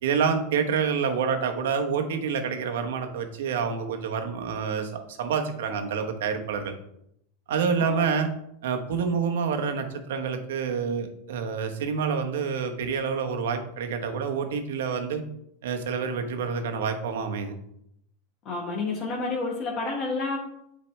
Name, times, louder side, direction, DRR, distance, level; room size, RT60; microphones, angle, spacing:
voice 1, 0.0-6.7 7.5-8.3 8.6-15.2 15.6-17.5, right 6 dB, 80° right, 5 dB, 1.0 m, -27 dB
voice 2, 18.4-20.4, left 3 dB, 40° left, -3 dB, 1.4 m, -30 dB
8.8 x 4.1 x 3.2 m, 0.75 s
supercardioid pair, 120°, 0 cm